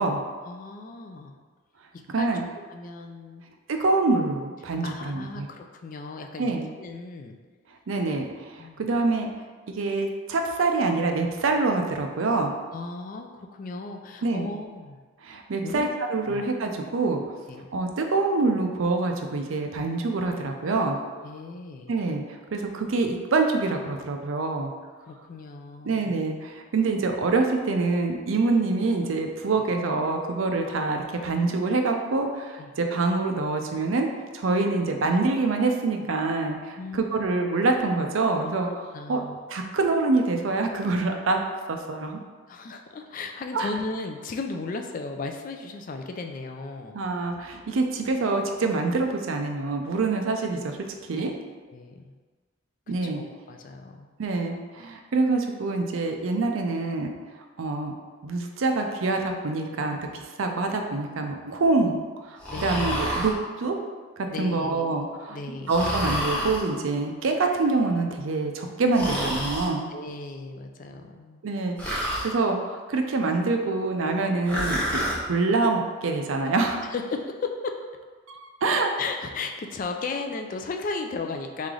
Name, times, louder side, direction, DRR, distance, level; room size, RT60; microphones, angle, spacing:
voice 1, 0.4-1.4 2.2-2.4 2.7-3.5 4.8-7.4 8.6-8.8 12.7-15.0 15.6-15.9 16.3-16.4 17.5-17.7 21.1-21.9 25.1-26.1 32.6-32.7 36.8-37.2 38.7-39.4 42.5-47.0 51.2-51.3 51.7-52.1 52.9-54.1 62.5-63.0 64.3-65.0 65.3-65.9 69.9-71.4 76.8-77.8 79.0-81.7, left 3 dB, 40° left, 4 dB, 0.3 m, -36 dB
voice 2, 2.1-2.4 3.7-5.5 6.4-6.7 7.9-9.3 9.7-12.5 14.2-14.5 15.2-17.2 17.7-21.0 21.9-24.7 25.8-34.1 34.3-38.7 39.1-39.2 39.5-41.4 41.7-42.2 43.5-43.7 46.9-50.8 51.1-51.3 52.9-53.2 54.2-57.1 57.6-57.9 58.2-62.0 62.2-63.3 63.6-63.8 64.2-65.4 65.7-69.9 71.4-76.9 78.3-78.9, right 3 dB, 70° right, 4 dB, 0.5 m, -25 dB
Breathing, 62.4-63.3 65.7-66.6 68.9-69.7 71.8-72.3 74.5-75.2, equal, 5° left, 0.8 m, -28 dB
3.8 x 3.2 x 3.7 m, 1.4 s
head